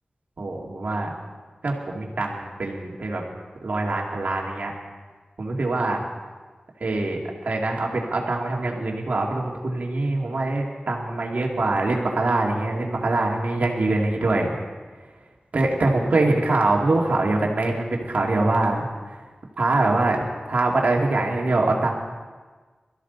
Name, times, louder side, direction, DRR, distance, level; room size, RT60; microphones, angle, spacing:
voice 1, 0.4-1.1 1.6-3.2 3.6-4.7 5.4-6.1 6.8-14.5 15.5-19.2 19.6-20.2 20.5-21.9, right 2 dB, 65° right, -1 dB, 2.5 m, -23 dB
21.5 x 13.5 x 4.1 m, 1.4 s
wide cardioid pair, 90°, 3 cm